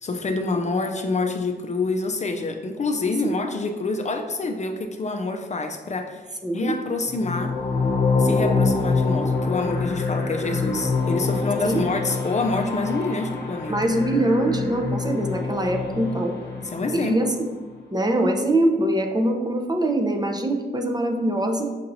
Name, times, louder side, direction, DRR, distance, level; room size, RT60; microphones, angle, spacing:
voice 1, 0.0-6.2 6.5-7.6 8.2-13.7 16.6-17.3, left 3 dB, 40° left, 5 dB, 0.4 m, -27 dB
voice 2, 6.4-6.8 11.6-11.9 13.7-16.4 16.9-17.3 17.9-21.7, right 1 dB, 20° right, 3 dB, 0.6 m, -23 dB
sound 1, 7.1-17.2, left 4 dB, 65° left, 0.8 m, -25 dB
6.6 x 2.8 x 2.6 m, 1.3 s
cardioid pair, 65°, 18 cm